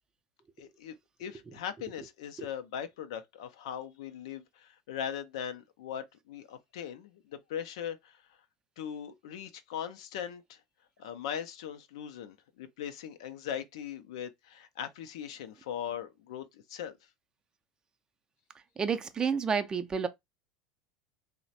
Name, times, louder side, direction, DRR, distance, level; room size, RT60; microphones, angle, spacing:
voice 1, 0.6-8.2 8.8-10.6 11.0-17.0, left 9 dB, 75° left, 0.4 m, -40 dB
voice 2, 18.8-20.1, right 6 dB, 25° right, 0.4 m, -30 dB
3.1 x 2.1 x 2.7 m
hypercardioid pair, 85°, 3 cm